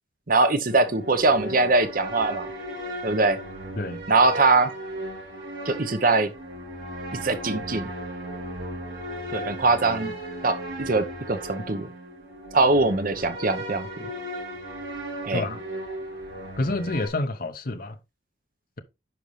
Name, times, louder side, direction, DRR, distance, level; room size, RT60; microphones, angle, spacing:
voice 1, 0.3-2.5 3.0-3.4 4.1-4.7 5.7-6.3 7.1-7.9 9.3-10.1 10.4-11.9 12.5-14.1 15.2-15.5, right 3 dB, 45° right, 0.8 m, -22 dB
emotional strings, 0.7-17.1, right 1 dB, 70° right, 5.1 m, -36 dB
voice 2, 16.6-18.0, left 2 dB, 50° left, 0.7 m, -28 dB
10.5 x 5.3 x 3.1 m
head